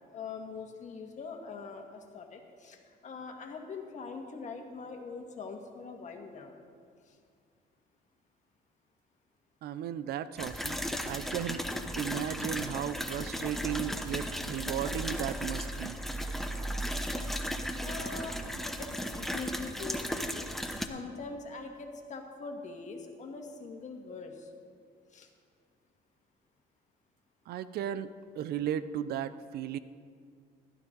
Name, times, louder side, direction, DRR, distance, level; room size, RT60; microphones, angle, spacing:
voice 1, 0.1-6.6 7.1-7.2 17.8-18.4 18.8-24.5 25.1-25.3, left 4 dB, 45° left, 3 dB, 1.7 m, -43 dB
voice 2, 9.6-10.8 11.1-11.6 12.0-16.0 27.5-29.8, right 10 dB, 70° right, 14 dB, 0.5 m, -35 dB
sound 1, 10.4-20.9, equal, ahead, 0.8 m, -35 dB
16.0 x 12.0 x 3.9 m, 2.1 s
cardioid pair, 110°, 17 cm